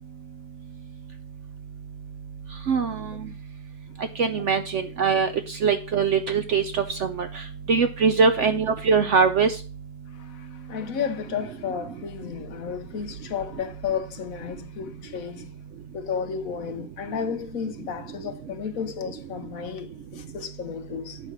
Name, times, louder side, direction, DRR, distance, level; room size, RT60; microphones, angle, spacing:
voice 1, 2.7-3.1 4.2-7.4 7.7-9.6, right 5 dB, 65° right, 0.8 m, -22 dB
voice 2, 10.1-15.5 15.9-21.2, left 7 dB, 60° left, 1.2 m, -33 dB
8.1 x 5.5 x 6.0 m
omnidirectional pair, 1.8 m